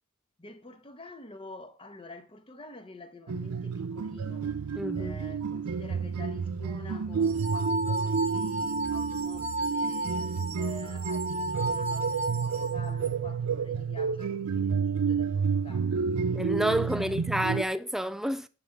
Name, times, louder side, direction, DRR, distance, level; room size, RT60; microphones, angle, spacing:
voice 1, 0.4-16.4 16.8-17.1, left 2 dB, 25° left, 1.0 m, -47 dB
sound 1, 3.3-17.6, right 6 dB, 85° right, 0.5 m, -30 dB
voice 2, 4.8-5.2 16.3-18.5, equal, ahead, 0.4 m, -29 dB
sound 2, 7.3-13.1, right 1 dB, 30° right, 1.0 m, -33 dB
9.3 x 3.6 x 6.9 m
head